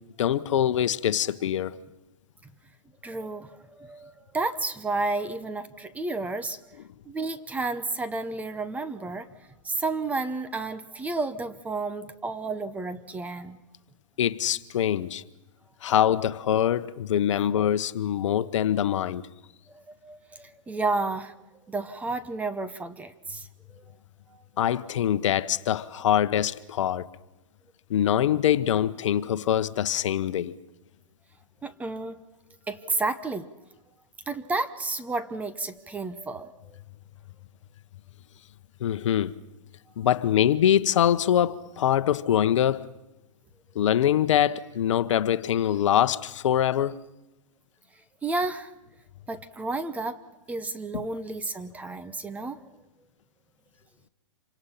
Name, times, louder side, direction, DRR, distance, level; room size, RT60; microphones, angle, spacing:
voice 1, 0.2-1.8 14.2-15.2 15.8-19.2 24.6-27.1 27.9-30.6 38.8-39.4 40.0-42.9 43.7-47.0, left 10 dB, 65° left, 1.1 m, -24 dB
voice 2, 3.0-6.8 7.0-9.3 9.6-13.6 19.7-21.3 21.7-23.5 23.7-23.8 24.3-24.4 25.9-26.1 31.6-32.2 32.7-33.5 34.3-36.8 48.2-48.7 49.3-50.2 50.5-52.6, right 3 dB, 10° right, 0.9 m, -31 dB
27.5 x 25.5 x 5.8 m
hypercardioid pair, 145°, 17 cm